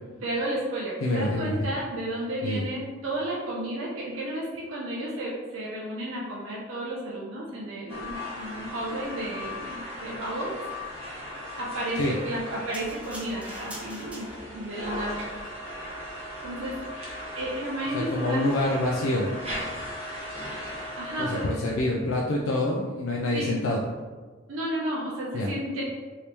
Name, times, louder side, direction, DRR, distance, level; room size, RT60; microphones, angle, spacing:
voice 1, 0.2-10.5 10.9-11.2 11.6-15.2 16.4-18.5 21.0-21.5 23.3-23.5 24.5-25.8, right 1 dB, 80° right, -4 dB, 0.5 m, -32 dB
voice 2, 1.0-1.6 2.4-2.6 11.9-12.1 17.9-19.3 21.2-23.8 25.3-25.5, left 1 dB, 90° left, -2 dB, 0.4 m, -26 dB
sound 1, 7.9-21.5, left 1 dB, 30° right, 0.8 m, -37 dB
sound 2, 12.7-14.7 15.3-15.5, right 1 dB, 5° right, 0.4 m, -44 dB
3.0 x 2.7 x 3.3 m, 1.4 s
head